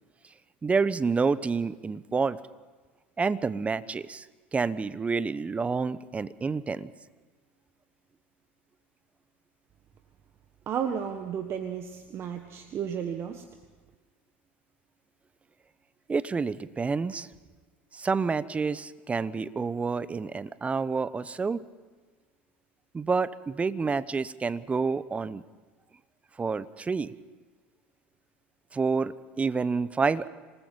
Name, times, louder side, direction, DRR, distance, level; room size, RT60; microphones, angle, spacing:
voice 1, 0.6-2.4 3.2-4.3 4.5-6.9 16.1-17.3 17.9-21.6 22.9-25.4 26.4-27.1 28.7-30.3, right 4 dB, 20° right, 17 dB, 0.9 m, -28 dB
voice 2, 10.7-13.4, right 8 dB, 40° right, 6 dB, 1.5 m, -33 dB
26.5 x 20.0 x 5.4 m, 1.4 s
hypercardioid pair, 75°, 6 cm